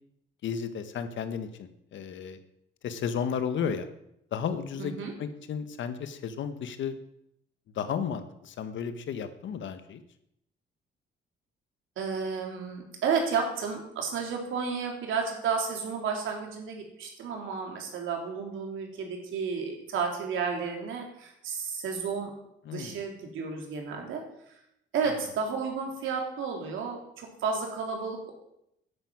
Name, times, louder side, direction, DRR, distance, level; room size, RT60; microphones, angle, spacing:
voice 1, 0.4-2.4 2.8-3.9 4.3-6.9 7.7-10.0 22.6-23.0, left 7 dB, 70° left, 9 dB, 1.6 m, -33 dB
voice 2, 4.8-5.1 12.0-22.3 22.7-24.2 24.9-28.3, right 5 dB, 80° right, 2 dB, 3.6 m, -32 dB
10.5 x 9.2 x 8.9 m, 0.79 s
cardioid pair, 90°, 20 cm